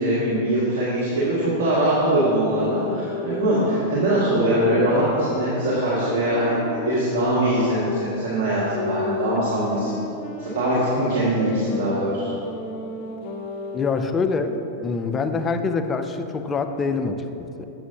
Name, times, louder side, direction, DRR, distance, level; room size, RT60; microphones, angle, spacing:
voice 1, 0.0-9.9 10.4-12.3, right 1 dB, 60° right, -9 dB, 1.5 m, -22 dB
sound 1, 2.6-8.1 8.7-14.1, left 4 dB, 50° left, 0.7 m, -33 dB
voice 2, 13.7-17.7, left 4 dB, 25° left, 8 dB, 0.4 m, -25 dB
7.7 x 6.9 x 2.8 m, 2.9 s
hypercardioid pair, 95°, 0 cm